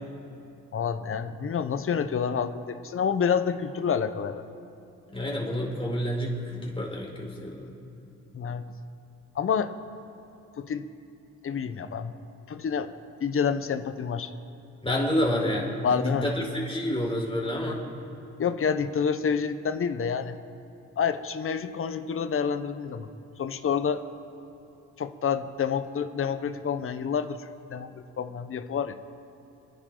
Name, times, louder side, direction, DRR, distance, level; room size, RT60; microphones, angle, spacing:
voice 1, 0.7-4.4 8.3-8.6 9.3-9.7 10.6-10.8 11.4-12.1 12.5-12.9 13.2-14.3 15.8-16.3 18.4-20.4 21.0-23.1 23.4-24.0 25.0-29.0, left 6 dB, 45° left, 10 dB, 1.0 m, -28 dB
voice 2, 5.1-7.6 14.8-17.8, left 1 dB, 20° left, -2 dB, 4.1 m, -28 dB
28.5 x 10.0 x 3.9 m, 2.9 s
cardioid pair, 90°, 30 cm